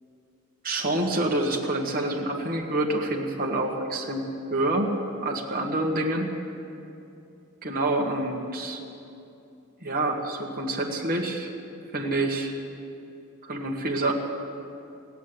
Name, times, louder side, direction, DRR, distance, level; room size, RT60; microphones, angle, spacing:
voice 1, 0.6-4.2 4.5-4.9 5.2-6.3 7.6-8.8 9.8-11.5 11.9-12.5 13.4-14.1, right 2 dB, 40° right, 0 dB, 1.6 m, -27 dB
16.0 x 8.4 x 9.8 m, 2.7 s
head